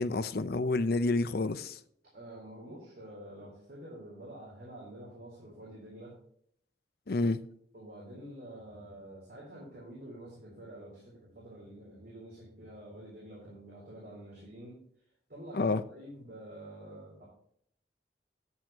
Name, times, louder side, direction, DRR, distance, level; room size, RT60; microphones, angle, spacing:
voice 1, 0.0-1.8 7.1-7.4 15.5-15.8, left 3 dB, 60° left, 0.6 m, -29 dB
voice 2, 2.1-6.1 7.7-14.8 15.3-17.2, right 1 dB, 60° right, 3.7 m, -48 dB
9.5 x 9.4 x 2.9 m
head